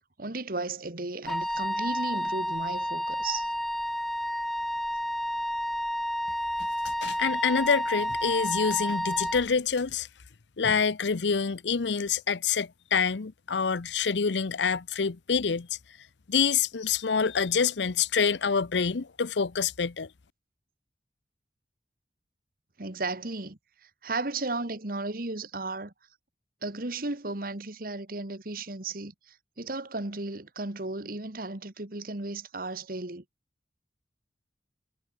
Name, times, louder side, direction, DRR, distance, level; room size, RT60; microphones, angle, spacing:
voice 1, 0.2-3.5 22.8-25.9 26.6-33.2, right 3 dB, 55° right, 1.8 m, -35 dB
Wind instrument woodwind instrument, 1.3-9.4, equal, ahead, 0.6 m, -30 dB
voice 2, 6.8-10.1 10.6-15.7 16.3-20.1, left 6 dB, 85° left, 0.7 m, -26 dB
head